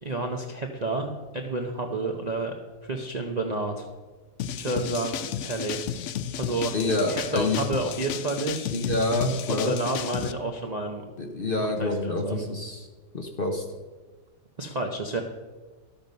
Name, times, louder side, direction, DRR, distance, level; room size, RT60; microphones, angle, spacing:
voice 1, 0.0-2.5 2.8-3.9 4.5-5.8 6.4-6.7 7.1-8.7 9.5-11.0 11.8-12.5 14.6-15.2, right 2 dB, 40° right, 2 dB, 0.6 m, -30 dB
sound 1, 4.4-10.3, left 9 dB, 80° left, 0.6 m, -33 dB
voice 2, 6.7-7.6 8.7-9.7 11.2-12.9 13.1-13.6, left 2 dB, 40° left, 3 dB, 0.9 m, -27 dB
12.0 x 7.3 x 5.3 m, 1.3 s
omnidirectional pair, 1.8 m